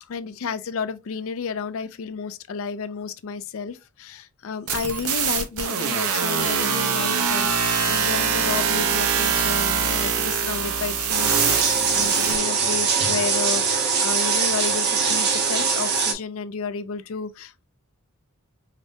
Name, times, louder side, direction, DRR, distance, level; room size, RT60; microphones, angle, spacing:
voice 1, 0.1-17.6, left 5 dB, 65° left, 0.4 m, -32 dB
sound 1, 4.7-12.4, right 6 dB, 80° right, 0.7 m, -23 dB
sound 2, 11.1-16.1, right 5 dB, 50° right, 0.7 m, -22 dB
4.9 x 2.1 x 2.6 m
head